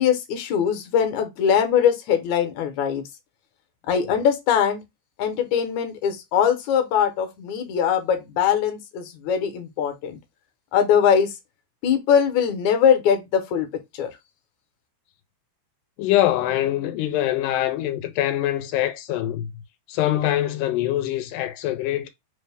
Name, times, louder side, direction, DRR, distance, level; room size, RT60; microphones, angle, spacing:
voice 1, 0.0-3.0 3.9-4.8 5.2-10.2 10.7-11.3 11.8-13.7 14.0-14.1, left 8 dB, 75° left, 2.0 m, -21 dB
voice 2, 16.0-19.5 19.9-22.1, left 13 dB, 90° left, 2.2 m, -24 dB
5.2 x 2.1 x 3.3 m
omnidirectional pair, 3.7 m